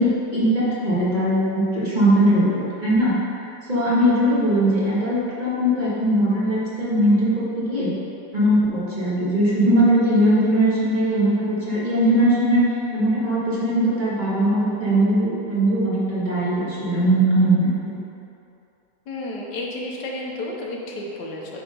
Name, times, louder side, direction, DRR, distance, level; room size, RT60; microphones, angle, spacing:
voice 1, 0.0-3.1 3.4-7.9 8.3-18.0, right 1 dB, 30° right, -9 dB, 1.9 m, -20 dB
voice 2, 19.1-21.6, left 2 dB, 85° left, -2 dB, 1.6 m, -31 dB
9.0 x 3.8 x 5.3 m, 2.7 s
omnidirectional pair, 1.8 m